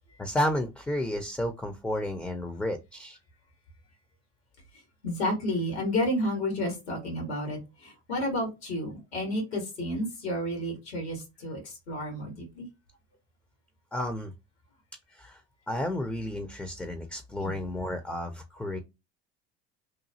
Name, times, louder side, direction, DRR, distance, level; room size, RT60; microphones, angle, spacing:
voice 1, 0.2-3.2 13.9-14.3 15.1-15.4 15.7-18.8, left 1 dB, 5° left, 7 dB, 0.5 m, -32 dB
voice 2, 5.0-12.7, left 1 dB, 85° left, 1 dB, 1.5 m, -31 dB
2.9 x 2.3 x 2.7 m, 0.24 s
hypercardioid pair, 70°, 31 cm